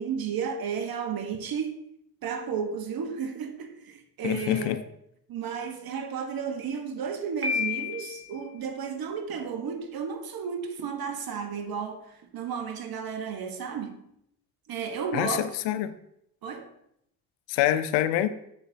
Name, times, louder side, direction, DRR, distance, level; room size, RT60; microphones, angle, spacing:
voice 1, 0.0-1.8 2.2-4.9 5.3-14.1 14.7-15.6 16.4-16.7, right 6 dB, 50° right, 1.2 m, -33 dB
voice 2, 4.2-4.8 15.1-15.9 17.5-18.3, left 13 dB, 65° left, 0.7 m, -26 dB
Piano, 7.4-8.4, left 6 dB, 30° right, 2.1 m, -30 dB
7.6 x 6.7 x 2.8 m
hypercardioid pair, 60°, 46 cm